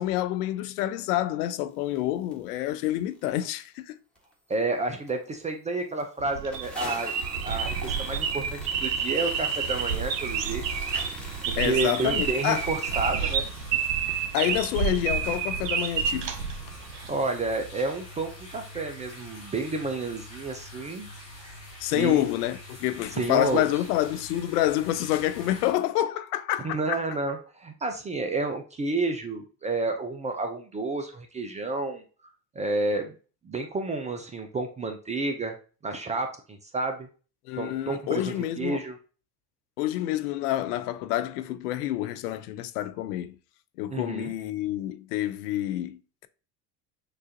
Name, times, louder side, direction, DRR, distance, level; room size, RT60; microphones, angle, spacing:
voice 1, 0.0-4.0 11.6-12.7 14.3-16.3 21.8-27.0 37.5-38.8 39.8-43.4 43.8-46.3, left 13 dB, 65° left, 0.5 m, -28 dB
sound 1, 1.9-2.0 2.3-2.4 2.8-3.3 3.7-3.8 4.2-4.7 5.1-5.2 5.5-5.6 5.8-6.0 6.5-19.2, equal, ahead, 1.2 m, -45 dB
voice 2, 4.5-10.6 11.4-13.5 17.1-21.1 21.9-22.3 23.2-23.7 26.6-32.0 32.6-33.1 33.4-35.5 35.8-37.1 37.6-39.0 43.9-44.3, right 3 dB, 15° right, 0.4 m, -30 dB
sound 2, 6.2-17.1, right 7 dB, 75° right, 0.7 m, -29 dB
sound 3, 9.1-25.7, left 1 dB, 90° left, 2.2 m, -45 dB
6.6 x 2.4 x 2.6 m
hypercardioid pair, 70°, 50 cm